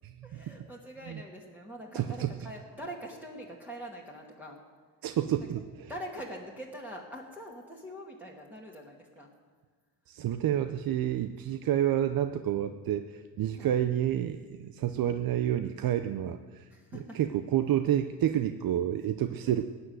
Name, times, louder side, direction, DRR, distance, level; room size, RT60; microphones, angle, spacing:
voice 1, 0.2-4.6 5.9-9.3 13.6-13.8 16.7-17.2 19.4-19.5, equal, 5° right, -4 dB, 2.2 m, -44 dB
voice 2, 1.9-2.3 5.0-5.6 10.1-16.7 17.1-19.6, right 11 dB, 50° right, 9 dB, 0.7 m, -29 dB
16.0 x 9.8 x 7.9 m, 1.5 s
supercardioid pair, 90°, 45 cm